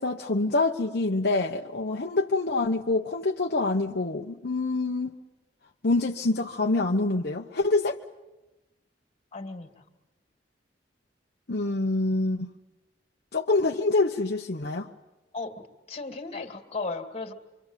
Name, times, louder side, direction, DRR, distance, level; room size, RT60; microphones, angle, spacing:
voice 1, 0.0-5.2 5.8-8.0 11.5-12.5 13.3-14.9, left 2 dB, 60° left, 1 dB, 1.0 m, -26 dB
voice 2, 9.3-9.7 15.3-17.3, left 3 dB, 35° left, 5 dB, 2.6 m, -35 dB
26.5 x 24.5 x 9.1 m, 1.0 s
head